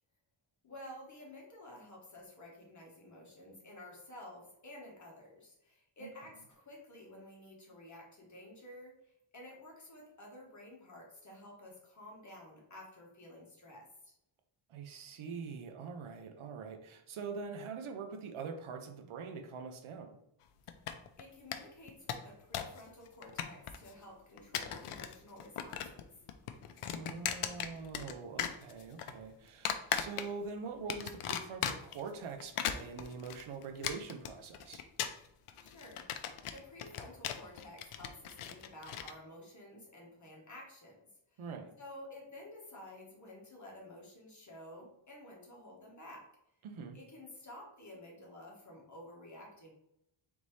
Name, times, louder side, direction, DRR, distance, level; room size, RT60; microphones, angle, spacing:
voice 1, 0.6-14.2 21.2-26.2 35.6-41.0 41.3-41.5 41.8-46.3 46.9-49.7, left 1 dB, 35° left, -2 dB, 1.3 m, -52 dB
voice 2, 14.7-20.2 26.9-34.8 41.4-41.7 46.6-47.0, right 5 dB, 75° right, 6 dB, 0.6 m, -44 dB
sound 1, 20.7-21.2 21.5-21.6 21.9-22.8 23.1-23.9 24.4-25.1 25.4-26.0 26.3-28.1 28.4-29.1 29.7-30.5 30.9-32.0 32.4-39.1, left 9 dB, 80° left, 0.5 m, -37 dB
4.0 x 3.5 x 3.1 m, 0.79 s
wide cardioid pair, 165°, 50 cm